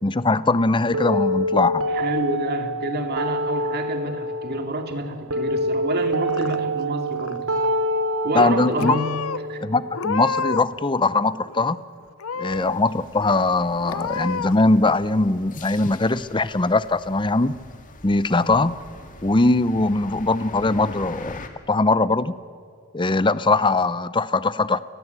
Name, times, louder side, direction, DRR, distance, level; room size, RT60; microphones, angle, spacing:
voice 1, 0.0-1.9 8.3-9.0 9.6-11.8 12.4-17.5 18.0-18.7 19.2-22.3 22.9-24.8, left 2 dB, 20° left, 15 dB, 0.7 m, -21 dB
sound 1, 0.9-10.9, equal, 70° right, 4.3 m, -27 dB
voice 2, 1.9-7.4 8.2-9.2 9.5-9.6, right 1 dB, 45° right, 5 dB, 2.6 m, -28 dB
Purr / Meow, 6.0-6.8 7.1-7.7 8.4-8.5 8.8-9.4 9.9-10.8 11.1-11.8 12.2-12.8 13.2-13.3 13.8-14.5, left 5 dB, 70° left, 0.7 m, -30 dB
sound 2, 12.5-21.5, left 2 dB, 35° left, 2.1 m, -43 dB
29.5 x 20.0 x 8.2 m, 2.4 s
head